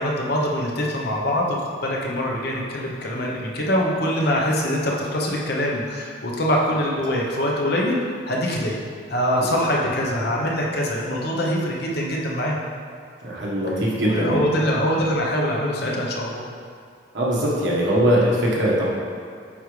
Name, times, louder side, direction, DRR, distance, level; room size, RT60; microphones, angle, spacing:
voice 1, 0.0-8.0 8.3-8.8 9.1-12.6 14.0-16.4, equal, 55° left, -2 dB, 1.0 m, -23 dB
voice 2, 13.2-14.5 17.1-18.9, equal, 65° right, -5 dB, 1.5 m, -21 dB
8.8 x 4.8 x 3.3 m, 2.2 s
head